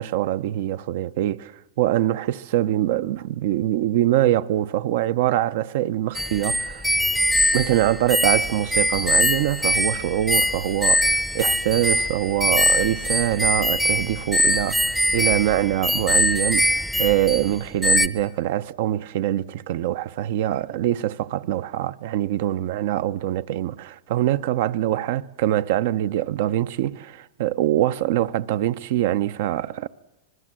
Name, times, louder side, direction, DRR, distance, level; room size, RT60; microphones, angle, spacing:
voice 1, 0.0-6.9 7.5-29.9, right 13 dB, 60° right, 0.7 m, -24 dB
sound 1, 6.2-17.5 17.8-18.1, equal, ahead, 0.7 m, -22 dB
25.0 x 20.5 x 7.6 m
supercardioid pair, 140°, 0 cm